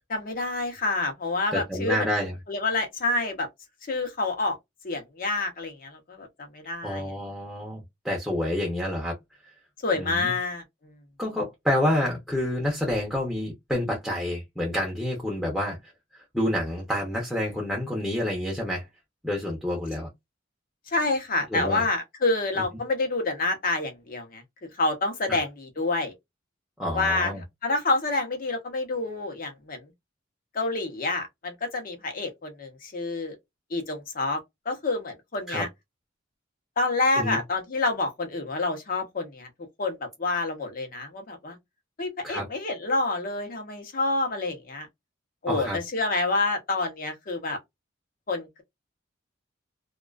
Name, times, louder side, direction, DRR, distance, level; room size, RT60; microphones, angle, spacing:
voice 1, 0.1-3.5 3.9-4.6 4.8-7.1 9.8-10.6 20.9-24.4 24.8-26.1 26.9-27.3 27.6-29.9 30.5-33.4 33.7-34.4 34.7-35.7 36.8-39.5 39.8-41.6 42.0-44.9 45.4-47.6 48.3-48.6, left 3 dB, 45° left, 0.7 m, -28 dB
voice 2, 1.5-2.4 6.8-9.2 10.0-10.3 11.2-18.9 19.2-20.1 21.5-21.8 22.6-22.7 25.3-25.4 26.8-27.4 35.5-35.7 37.2-37.4 42.2-42.5 45.5-45.8, left 1 dB, ahead, 0.6 m, -28 dB
2.3 x 2.3 x 2.3 m
head